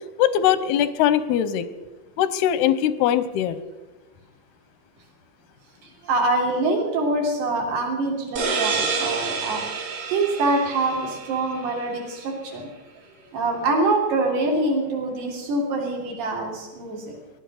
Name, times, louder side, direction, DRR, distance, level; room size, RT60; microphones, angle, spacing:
voice 1, 0.2-1.7 2.2-3.6, left 10 dB, 85° left, 15 dB, 2.7 m, -21 dB
voice 2, 5.8-9.6 10.1-12.6 13.3-17.2, right 2 dB, 80° right, -1 dB, 5.3 m, -25 dB
sound 1, 8.4-11.8, right 4 dB, 60° right, 4.5 m, -28 dB
19.0 x 12.0 x 6.4 m, 1.2 s
omnidirectional pair, 4.6 m